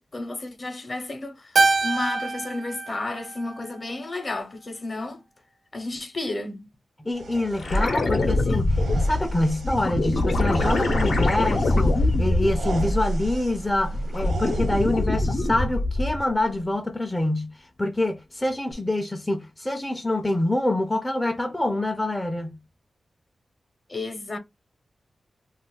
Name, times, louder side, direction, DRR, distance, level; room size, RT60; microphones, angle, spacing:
voice 1, 0.0-5.2 5.7-6.7 23.9-24.4, left 2 dB, 40° left, 0.7 m, -32 dB
Keyboard (musical), 1.5-4.1, right 3 dB, 60° right, 0.4 m, -25 dB
voice 2, 7.0-22.6, left 1 dB, 15° left, 0.4 m, -26 dB
sound 1, 7.1-15.0, right 3 dB, 85° right, 0.8 m, -38 dB
sound 2, 7.6-13.4 13.8-16.3 18.7-18.8, left 2 dB, 75° left, 0.7 m, -23 dB
2.4 x 2.3 x 3.8 m
wide cardioid pair, 100°, 0 cm